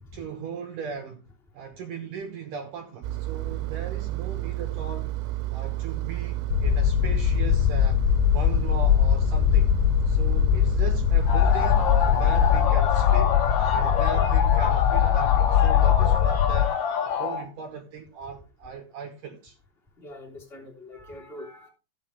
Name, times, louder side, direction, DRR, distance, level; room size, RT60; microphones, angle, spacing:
voice 1, 0.1-1.2 1.5-5.2 5.5-8.0 8.3-9.7 10.1-13.4 13.7-16.8 17.2-19.6, right 6 dB, 70° right, 2.0 m, -38 dB
Engine, 3.0-12.7, right 16 dB, 85° right, 3.2 m, -31 dB
sound 1, 6.5-16.7, left 11 dB, 80° left, 2.7 m, -21 dB
sound 2, 11.3-17.5, left 7 dB, 60° left, 2.6 m, -26 dB
voice 2, 20.0-21.7, left 1 dB, 15° left, 2.8 m, -43 dB
14.5 x 7.7 x 3.5 m
omnidirectional pair, 5.4 m